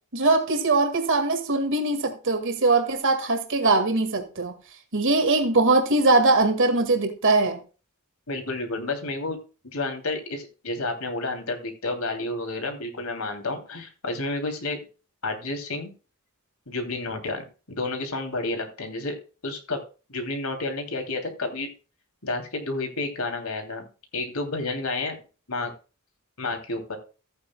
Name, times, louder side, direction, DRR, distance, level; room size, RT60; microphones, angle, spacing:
voice 1, 0.1-4.5 4.9-7.6, right 3 dB, 60° right, 1.9 m, -21 dB
voice 2, 8.3-9.4 9.7-14.8 15.2-15.9 16.7-19.1 19.4-19.8 20.1-21.7 22.2-23.9 24.1-25.2 25.5-25.7 26.4-27.0, left 2 dB, 85° left, 2.9 m, -30 dB
14.5 x 8.8 x 2.3 m
head